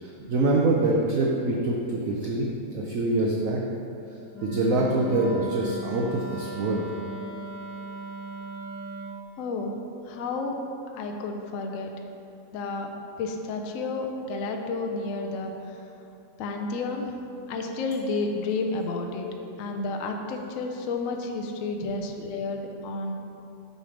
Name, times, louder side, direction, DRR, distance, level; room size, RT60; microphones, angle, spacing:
voice 1, 0.0-3.6 4.4-6.8 21.8-21.9, right 2 dB, 85° right, -1 dB, 0.7 m, -25 dB
Wind instrument woodwind instrument, 4.3-9.2, right 2 dB, 25° left, 1.3 m, -37 dB
voice 2, 9.4-10.6 10.9-11.9 12.5-12.9 13.2-15.5 16.4-17.1 17.5-23.1, left 3 dB, 85° left, 3 dB, 0.7 m, -31 dB
6.5 x 3.3 x 5.0 m, 2.8 s
omnidirectional pair, 2.0 m